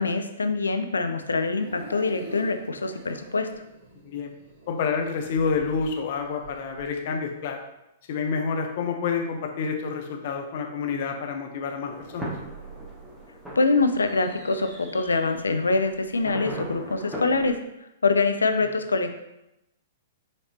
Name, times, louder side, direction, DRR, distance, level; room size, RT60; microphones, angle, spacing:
voice 1, 0.0-3.5 13.6-17.6 18.0-19.1, left 3 dB, 85° left, 7 dB, 0.5 m, -24 dB
sound 1, 1.2-5.0 5.2-6.8, right 2 dB, 55° right, 1.7 m, -43 dB
voice 2, 4.7-7.6 8.1-12.3, left 5 dB, 55° left, 3 dB, 0.8 m, -28 dB
sound 2, 11.9-17.5, right 1 dB, ahead, 1.0 m, -39 dB
5.8 x 3.2 x 2.9 m, 0.88 s
hypercardioid pair, 115°, 0 cm